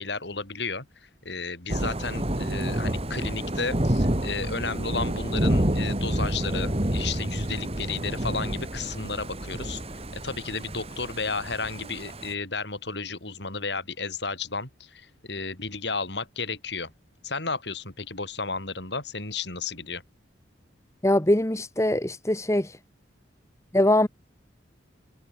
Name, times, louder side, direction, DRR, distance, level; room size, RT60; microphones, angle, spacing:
voice 1, 0.0-9.8 10.1-16.9 17.2-20.0, left 4 dB, 60° left, 5.1 m, -33 dB
Thunder / Rain, 1.7-12.3, right 1 dB, 30° right, 2.4 m, -29 dB
voice 2, 21.0-22.8 23.7-24.1, left 1 dB, 15° left, 1.2 m, -22 dB
head